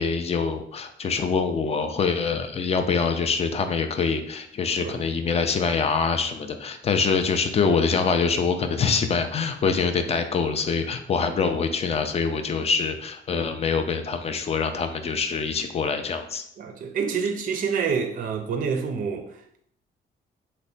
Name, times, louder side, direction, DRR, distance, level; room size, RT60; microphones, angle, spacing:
voice 1, 0.0-16.4, left 5 dB, 30° left, 0.4 m, -25 dB
voice 2, 16.6-19.3, right 6 dB, 45° right, 0.4 m, -27 dB
3.2 x 2.1 x 3.8 m
cardioid pair, 90°, 20 cm